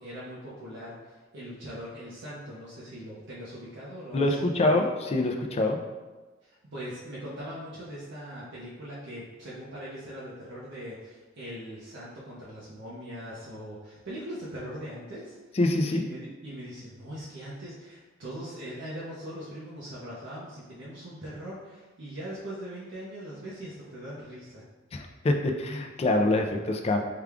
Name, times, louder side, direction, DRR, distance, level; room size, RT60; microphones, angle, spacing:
voice 1, 0.0-4.8 6.4-15.4 15.8-24.6, equal, 65° right, -7 dB, 0.8 m, -41 dB
voice 2, 4.1-5.8 15.6-16.0 24.9-27.0, left 2 dB, 30° left, 4 dB, 0.4 m, -25 dB
4.8 x 2.3 x 3.5 m, 1.2 s
head